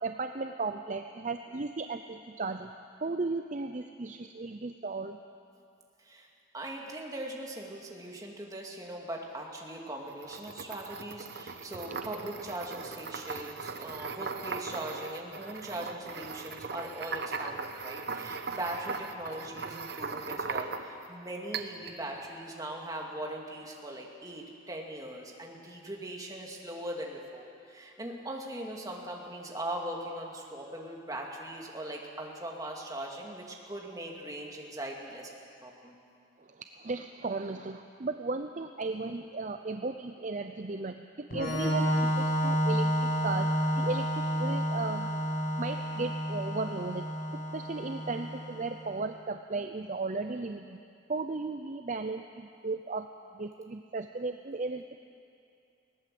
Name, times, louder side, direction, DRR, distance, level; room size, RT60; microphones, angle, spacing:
voice 1, 0.0-2.7 3.0-5.2 36.5-43.5 43.8-45.1 45.6-47.1 47.5-50.8 51.1-53.1 53.3-55.0, right 3 dB, 40° right, 7 dB, 0.6 m, -35 dB
voice 2, 6.5-35.3 35.6-35.9, right 1 dB, 20° right, -1 dB, 2.4 m, -40 dB
sound 1, 10.1-21.1 21.5-22.0, right 4 dB, 55° right, 1.0 m, -39 dB
Organ, 41.3-48.8, equal, 50° left, 6.5 m, -30 dB
20.0 x 18.0 x 7.8 m, 2.5 s
head